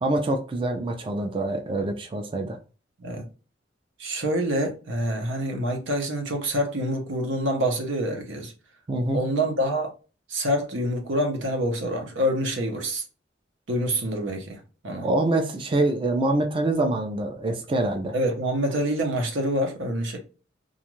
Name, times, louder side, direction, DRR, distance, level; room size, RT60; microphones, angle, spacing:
voice 1, 0.0-2.6 8.9-9.2 15.0-18.1, right 2 dB, 30° right, 0.4 m, -25 dB
voice 2, 4.0-8.5 9.1-9.9 10.3-13.0 13.7-15.1 18.1-20.2, equal, 90° right, 0.8 m, -26 dB
2.5 x 2.3 x 3.0 m
head